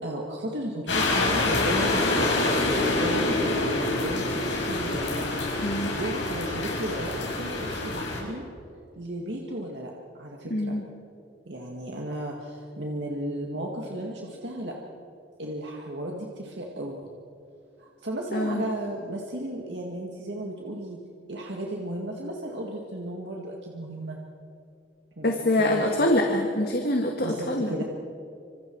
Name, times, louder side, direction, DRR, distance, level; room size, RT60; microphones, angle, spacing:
voice 1, 0.0-2.5 2.9-8.4 9.0-9.9 10.2-10.8 11.5-14.8 15.4-17.0 17.8-21.0 21.3-24.2 25.2-26.1 27.2-27.8, right 1 dB, 65° right, -1 dB, 2.0 m, -34 dB
sound 1, 0.9-8.2, left 2 dB, 70° left, 5.7 m, -26 dB
voice 2, 5.6-5.9 10.5-10.8 18.3-18.6 25.2-27.8, left 1 dB, 50° left, 2 dB, 1.8 m, -25 dB
27.0 x 26.0 x 4.7 m, 2.5 s
head